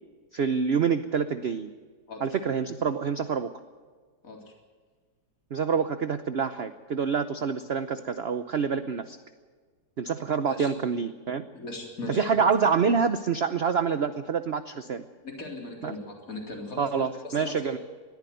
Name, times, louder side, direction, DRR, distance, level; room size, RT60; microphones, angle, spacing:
voice 1, 0.3-1.7 2.2-3.5 5.5-9.2 10.0-11.4 12.1-15.0 15.8-15.9 16.8-17.8, right 6 dB, 50° right, 11 dB, 0.8 m, -27 dB
voice 2, 4.2-4.5 10.5-10.7 11.5-12.2 15.2-17.8, left 2 dB, 50° left, 1 dB, 4.1 m, -38 dB
21.0 x 14.5 x 9.2 m, 1.5 s
omnidirectional pair, 1.8 m